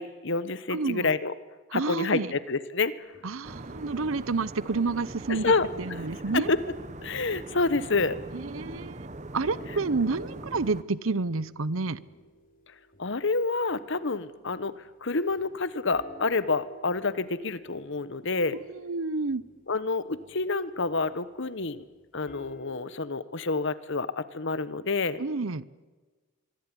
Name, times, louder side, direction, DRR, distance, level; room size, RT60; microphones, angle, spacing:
voice 1, 0.0-1.3 1.7-2.9 5.3-5.7 6.3-6.6 7.0-8.2 13.0-14.7 15.0-18.6 19.7-21.8 22.1-25.2, left 3 dB, 60° left, 15 dB, 1.2 m, -28 dB
voice 2, 0.7-1.1 1.7-2.3 3.2-5.5 5.8-6.5 8.3-9.1 9.3-12.0 18.5-19.4 25.2-25.7, right 3 dB, 80° right, 18 dB, 0.8 m, -29 dB
sound 1, 3.1-6.0 6.3-14.9 15.3-22.8, right 1 dB, 45° left, 3.3 m, -53 dB
sound 2, 3.4-10.8, right 2 dB, 35° right, 1.1 m, -41 dB
25.0 x 24.0 x 9.9 m, 1.3 s
head